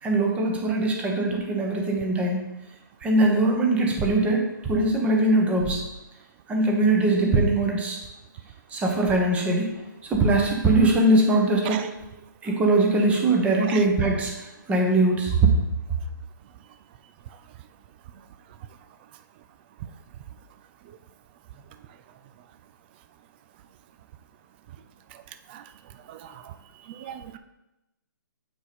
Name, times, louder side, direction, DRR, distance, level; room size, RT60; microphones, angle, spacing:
voice 1, 0.0-2.5 3.0-5.8 6.5-8.0 8.7-11.8 12.4-15.3, right 2 dB, 10° right, 1 dB, 1.0 m, -22 dB
voice 2, 27.0-27.4, right 9 dB, 30° right, 10 dB, 0.4 m, -36 dB
7.9 x 4.8 x 4.2 m, 0.95 s
hypercardioid pair, 145°, 11 cm